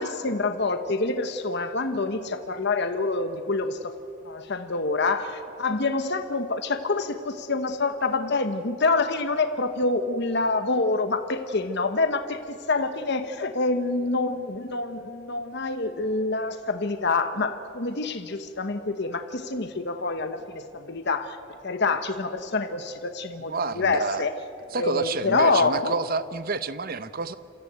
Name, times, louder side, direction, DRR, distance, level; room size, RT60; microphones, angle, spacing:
voice 1, 0.0-3.9 4.2-21.4 21.6-24.3 24.7-25.9, left 3 dB, 50° left, 8 dB, 1.0 m, -26 dB
voice 2, 23.4-24.3 24.7-27.3, right 4 dB, 45° right, 14 dB, 0.7 m, -29 dB
28.0 x 14.5 x 8.9 m, 2.6 s
head